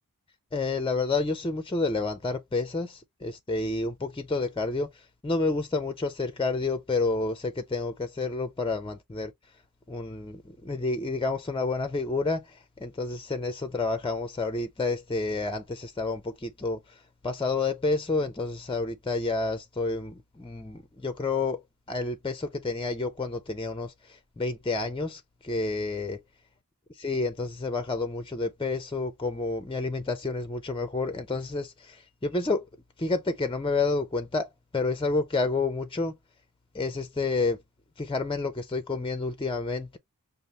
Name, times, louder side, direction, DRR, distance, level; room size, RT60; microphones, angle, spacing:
voice 1, 0.5-9.3 9.9-21.6 21.9-26.2 26.9-32.6 33.0-36.1 36.7-37.6 38.0-40.0, left 3 dB, 15° left, 0.6 m, -29 dB
5.3 x 2.1 x 3.1 m
cardioid pair, 40°, 35 cm